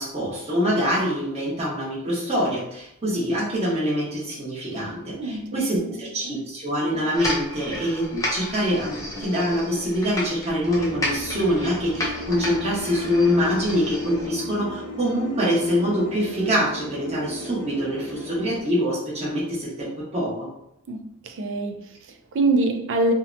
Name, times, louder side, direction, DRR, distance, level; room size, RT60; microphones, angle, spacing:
voice 1, 0.0-20.5, equal, 30° right, 0.9 m, -25 dB
voice 2, 5.2-5.6 5.8-6.4 20.9-23.1, right 2 dB, 60° right, 0.4 m, -25 dB
sound 1, 7.1-14.3, left 1 dB, 15° left, 0.4 m, -32 dB
sound 2, 10.6-18.6, left 1 dB, 75° left, 0.5 m, -36 dB
2.6 x 2.1 x 2.5 m
head